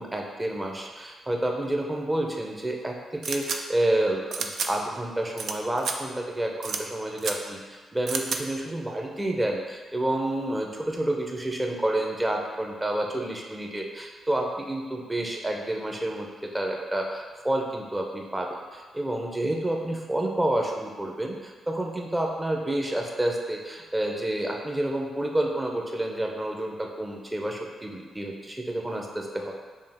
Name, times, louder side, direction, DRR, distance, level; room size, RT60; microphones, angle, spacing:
voice 1, 0.0-29.5, right 1 dB, 15° right, 1 dB, 0.7 m, -29 dB
sound 1, 3.2-3.6 4.3-4.7 5.4-5.5 5.8-5.9 6.6-6.8 7.2-7.3 8.1-8.4, right 5 dB, 65° right, 0.4 m, -30 dB
5.3 x 2.4 x 3.5 m, 1.5 s
cardioid pair, 75°, 0 cm